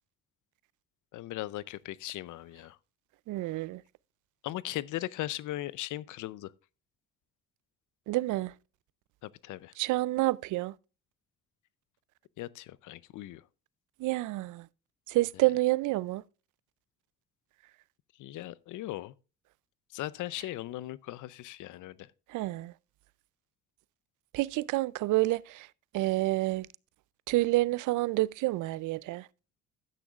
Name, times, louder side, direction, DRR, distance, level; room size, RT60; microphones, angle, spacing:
voice 1, 1.1-2.8 4.4-6.5 9.2-9.7 12.4-13.4 18.2-19.1 19.9-22.1, left 15 dB, 80° left, 0.6 m, -38 dB
voice 2, 3.3-3.8 8.1-8.5 9.8-10.7 14.0-14.7 15.1-16.2 22.3-22.7 24.3-25.7 25.9-26.7 27.3-29.3, right 19 dB, 80° right, 0.5 m, -28 dB
12.0 x 9.3 x 2.4 m
cardioid pair, 90°, 30 cm